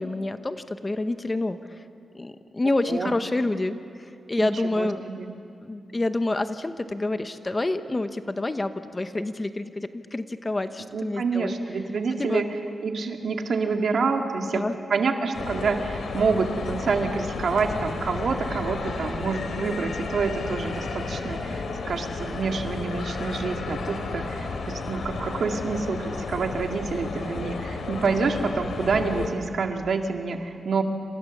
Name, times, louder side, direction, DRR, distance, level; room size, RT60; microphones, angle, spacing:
voice 1, 0.0-1.9 2.1-5.0 5.6-11.5 12.2-12.4 14.4-14.7, left 2 dB, 20° left, 9 dB, 0.9 m, -28 dB
voice 2, 4.4-5.3 10.9-12.4 12.8-14.6 14.9-30.8, right 4 dB, 60° right, 4 dB, 2.1 m, -27 dB
sound 1, 15.3-29.3, left 4 dB, 75° left, 3.3 m, -32 dB
28.0 x 27.5 x 7.3 m, 2.5 s
wide cardioid pair, 150°, 0 cm